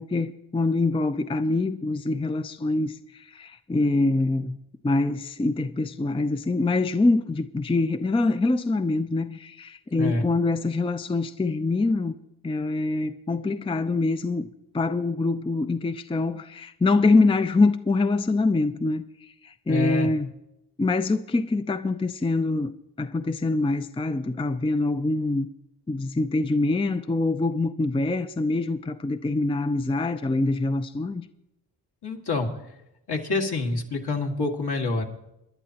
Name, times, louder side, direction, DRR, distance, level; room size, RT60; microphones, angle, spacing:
voice 1, 0.0-4.6 4.8-12.1 12.4-14.5 14.7-20.3 20.8-22.7 23.0-25.5 25.9-31.2, left 3 dB, 15° left, 0.5 m, -24 dB
voice 2, 19.7-20.1 32.0-32.5 33.1-35.0, left 3 dB, 60° left, 1.9 m, -26 dB
22.5 x 11.0 x 2.9 m
supercardioid pair, 40°, 43 cm